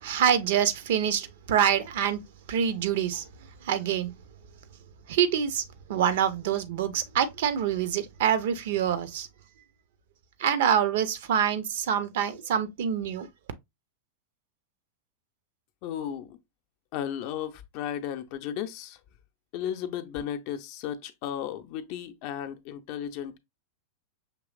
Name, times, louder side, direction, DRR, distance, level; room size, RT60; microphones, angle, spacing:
voice 1, 0.0-2.2 2.5-3.3 3.6-4.1 5.1-5.6 5.9-9.3 10.4-13.3, right 8 dB, 55° right, 0.5 m, -26 dB
voice 2, 15.8-16.4 16.9-19.0 19.5-23.4, left 10 dB, 45° left, 0.6 m, -34 dB
5.9 x 3.1 x 2.3 m
figure-of-eight pair, 90°, 0 cm